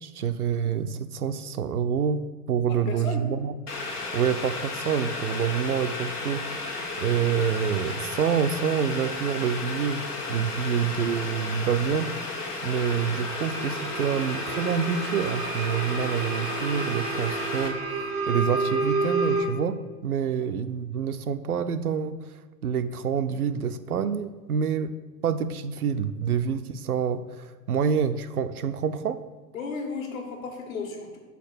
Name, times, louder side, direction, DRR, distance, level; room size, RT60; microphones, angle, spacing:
voice 1, 0.0-3.5 4.1-12.1 12.6-22.3 22.6-25.0 25.2-29.2, right 7 dB, 70° right, 10 dB, 0.6 m, -27 dB
voice 2, 2.7-3.3 20.4-20.5 29.5-31.2, left 4 dB, 55° left, 2 dB, 1.7 m, -34 dB
Boiling, 3.7-17.7, left 3 dB, 75° left, 1.3 m, -34 dB
sound 1, 12.7-19.4, right 4 dB, 15° right, 0.4 m, -30 dB
5.9 x 4.0 x 6.2 m, 1.3 s
figure-of-eight pair, 105°, 47 cm